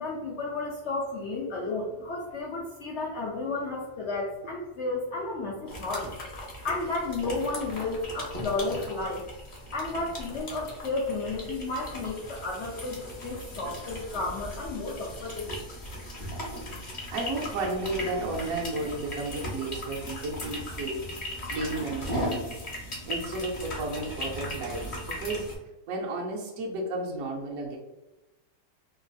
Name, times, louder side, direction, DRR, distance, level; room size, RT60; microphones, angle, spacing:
voice 1, 0.0-6.1 6.6-9.2 9.7-15.5, left 3 dB, 80° left, -3 dB, 0.6 m, -32 dB
sound 1, 5.7-25.6, left 1 dB, 45° left, 0.6 m, -38 dB
voice 2, 17.1-22.6 23.1-25.5 25.9-27.8, right 2 dB, 70° right, -2 dB, 0.9 m, -33 dB
3.0 x 2.3 x 2.5 m, 1.0 s
omnidirectional pair, 1.8 m